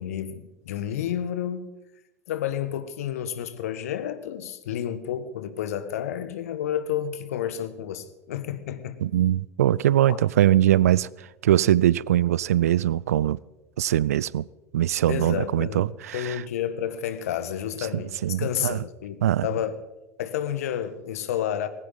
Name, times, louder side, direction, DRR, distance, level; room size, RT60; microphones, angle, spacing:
voice 1, 0.0-1.7 2.3-9.0 10.1-10.2 15.1-19.8 20.2-21.7, left 10 dB, 70° left, 1.3 m, -30 dB
voice 2, 9.0-11.1 11.4-13.4 13.8-14.4 14.7-16.4 18.2-18.8 19.2-19.5, right 12 dB, 75° right, 0.4 m, -21 dB
20.0 x 16.5 x 4.1 m
figure-of-eight pair, 75°, 8 cm